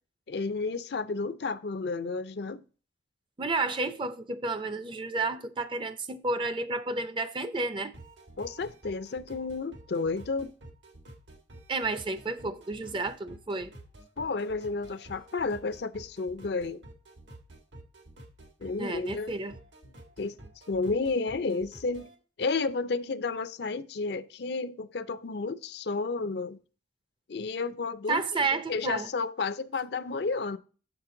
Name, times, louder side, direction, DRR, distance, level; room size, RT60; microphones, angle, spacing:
voice 1, 0.3-2.6 8.4-10.5 14.2-16.8 18.6-19.3 20.2-20.3 20.7-22.1 22.4-26.6 27.3-30.6, left 4 dB, 60° left, 0.5 m, -31 dB
voice 2, 3.4-7.9 11.7-13.7 18.8-19.5 28.1-29.1, right 3 dB, 25° right, 0.5 m, -31 dB
sound 1, 7.9-22.2, right 1 dB, 75° right, 1.7 m, -50 dB
7.5 x 5.9 x 3.8 m
head